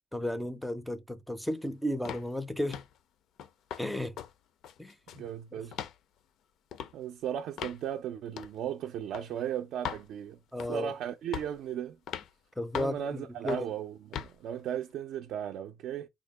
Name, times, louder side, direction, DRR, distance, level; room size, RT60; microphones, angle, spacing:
voice 1, 0.1-2.8 3.8-4.2 4.8-5.2 5.5-5.6 10.5-10.9 12.6-13.7, left 1 dB, ahead, 0.4 m, -34 dB
sound 1, 2.1-2.3 2.7-3.0 3.4-3.9 4.2-4.3 4.6-5.3 5.7-6.0 6.7-6.9 7.6-7.8 8.4-8.6 9.1-9.3 9.8-10.1 10.6-10.9 11.3-11.6 12.1-12.3 12.7-13.0 13.5-13.7 14.1-14.3, left 9 dB, 65° left, 0.4 m, -39 dB
voice 2, 5.1-5.8 6.9-10.4 10.7-12.0 12.7-16.1, right 9 dB, 65° right, 0.4 m, -36 dB
3.5 x 2.2 x 3.4 m
cardioid pair, 135°, 0 cm